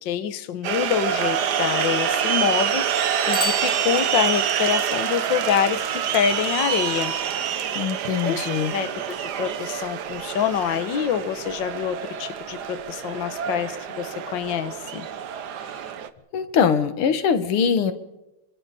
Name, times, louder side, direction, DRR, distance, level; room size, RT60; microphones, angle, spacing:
voice 1, 0.0-7.1 8.2-8.4 8.7-8.9 9.2-15.1, left 9 dB, 65° left, 11 dB, 1.7 m, -26 dB
sound 1, 0.6-16.1, right 9 dB, 55° right, 1.4 m, -27 dB
Bicycle bell, 3.3-4.6, equal, 15° left, 4.0 m, -32 dB
voice 2, 7.7-8.7 16.3-17.9, left 7 dB, 85° left, 10 dB, 2.3 m, -22 dB
27.5 x 25.0 x 4.2 m, 0.96 s
omnidirectional pair, 2.4 m